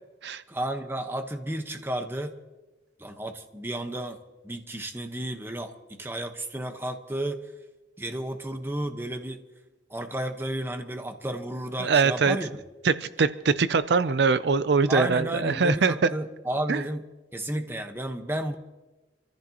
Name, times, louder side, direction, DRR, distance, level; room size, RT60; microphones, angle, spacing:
voice 1, 0.5-2.3 3.0-4.2 4.4-7.5 8.0-9.4 9.9-12.6 14.9-17.0 17.3-18.6, right 1 dB, 15° right, 5 dB, 1.1 m, -32 dB
voice 2, 11.8-12.4 12.8-16.1 16.7-16.8, right 5 dB, 65° right, 13 dB, 0.5 m, -23 dB
27.0 x 14.5 x 3.0 m, 1.1 s
head